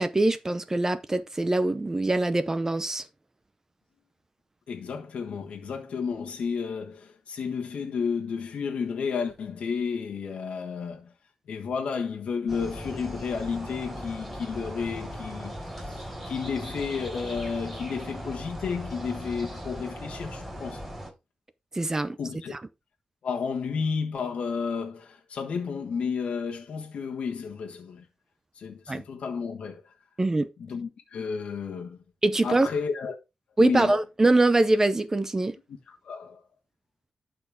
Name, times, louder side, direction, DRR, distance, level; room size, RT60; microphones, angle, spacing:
voice 1, 0.0-3.1 21.7-22.2 22.5-22.6 28.9-29.0 30.2-30.5 32.2-32.7 33.6-35.6, right 2 dB, 25° right, 0.6 m, -23 dB
voice 2, 4.7-11.1 11.5-20.8 22.2-22.5 23.2-28.1 28.5-29.8 30.6-32.0 32.4-33.2 33.6-33.9 35.9-36.4, left 5 dB, 80° left, 1.4 m, -32 dB
sound 1, 12.5-21.1, equal, 5° right, 5.3 m, -38 dB
12.5 x 4.3 x 3.5 m
cardioid pair, 75°, 2 cm